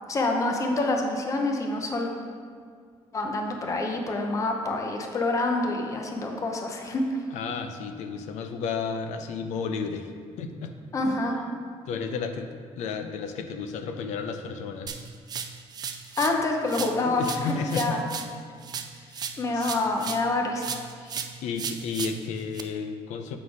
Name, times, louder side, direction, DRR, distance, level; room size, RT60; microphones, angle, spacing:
voice 1, 0.1-2.1 3.1-7.0 10.9-11.4 16.2-18.0 19.4-20.7, left 2 dB, 25° left, 2 dB, 0.7 m, -27 dB
voice 2, 7.3-10.1 10.4-10.8 11.9-12.5 12.8-15.1 17.0-18.1 18.9-19.7 21.0-23.4, left 5 dB, 90° left, 7 dB, 0.6 m, -33 dB
sound 1, 14.9-16.4 16.7-20.3 20.6-22.6, right 7 dB, 35° right, 0.4 m, -36 dB
7.8 x 4.1 x 4.8 m, 2.1 s
cardioid pair, 155°, 12 cm